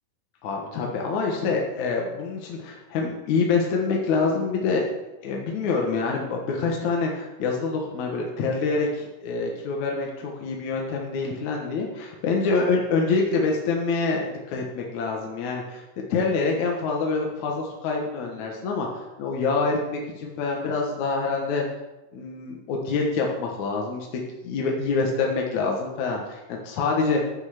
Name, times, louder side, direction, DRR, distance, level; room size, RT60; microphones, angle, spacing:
voice 1, 0.4-4.9 5.2-15.8 16.1-18.9 19.2-21.7 22.1-24.1 24.4-27.2, left 4 dB, 65° left, 0 dB, 1.9 m, -26 dB
10.0 x 8.3 x 6.5 m, 1.1 s
omnidirectional pair, 5.2 m